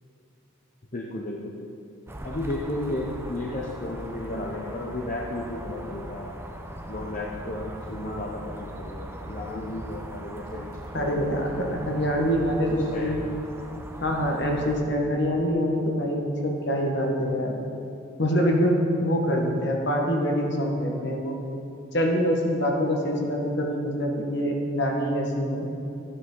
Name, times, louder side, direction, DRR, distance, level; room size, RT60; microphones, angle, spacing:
voice 1, 0.9-1.7 2.2-6.3 6.9-10.7 11.0-11.6 12.5-12.6 12.9-13.2, left 1 dB, 40° left, -2 dB, 0.8 m, -34 dB
sound 1, 2.1-14.8, right 1 dB, 10° right, 0.6 m, -39 dB
voice 2, 10.9-13.2 14.0-17.6 18.2-21.4 21.9-25.7, equal, 55° left, 1 dB, 1.5 m, -25 dB
13.5 x 9.7 x 3.9 m, 2.7 s
head